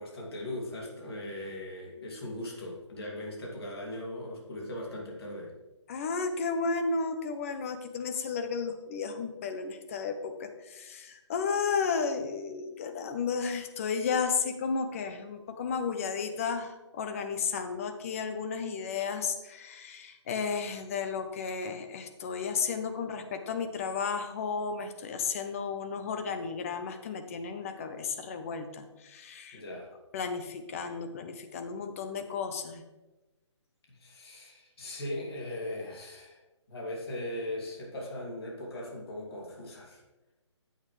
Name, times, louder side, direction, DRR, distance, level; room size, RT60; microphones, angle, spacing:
voice 1, 0.0-5.5 29.5-29.9 33.9-36.4 36.7-40.0, left 1 dB, 55° left, -2 dB, 2.6 m, -39 dB
voice 2, 5.9-29.6 30.1-32.8, left 5 dB, 30° left, 7 dB, 0.8 m, -33 dB
9.6 x 8.1 x 3.3 m, 1.1 s
hypercardioid pair, 160°, 15 cm